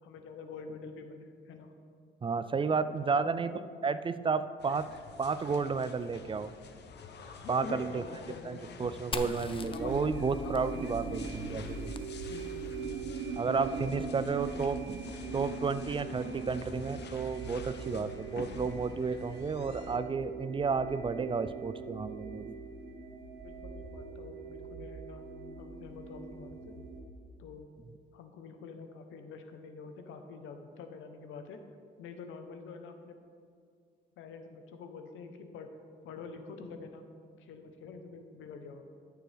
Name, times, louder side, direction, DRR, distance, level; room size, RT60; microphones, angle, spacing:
voice 1, 0.0-1.7 2.8-3.6 7.9-8.8 10.9-11.6 12.3-13.0 13.5-15.0 23.4-25.3 25.6-26.8 27.4-27.7 28.1-31.6 32.0-33.2 34.2-35.7 36.0-37.0 37.4-38.8, left 5 dB, 85° left, 7 dB, 0.9 m, -47 dB
voice 2, 2.2-3.5 3.8-4.9 5.2-6.5 7.5-8.2 8.4-11.9 13.3-15.0 15.3-22.5, right 5 dB, 25° right, 13 dB, 0.3 m, -32 dB
sound 1, 4.6-20.0, left 5 dB, 60° left, 0.8 m, -47 dB
Fire, 9.1-12.8, left 4 dB, 25° left, 0.5 m, -44 dB
sound 2, 9.6-27.0, right 4 dB, 85° right, 1.2 m, -41 dB
12.5 x 6.9 x 3.4 m, 2.2 s
cardioid pair, 90°, 20 cm